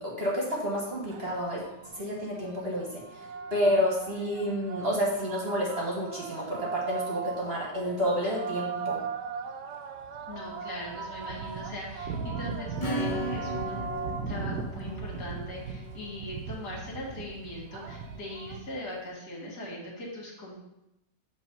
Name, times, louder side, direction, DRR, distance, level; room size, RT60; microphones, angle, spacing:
voice 1, 0.0-1.6 1.9-3.2 3.5-9.0, equal, 35° right, -3 dB, 1.4 m, -29 dB
sound 1, 1.1-18.6, right 5 dB, 75° right, 1.3 m, -38 dB
voice 2, 10.3-13.8 14.3-20.6, left 1 dB, 60° left, -4 dB, 2.4 m, -40 dB
Acoustic guitar / Strum, 12.8-17.1, equal, 35° left, 0.6 m, -37 dB
8.2 x 3.3 x 5.4 m, 0.88 s
omnidirectional pair, 1.9 m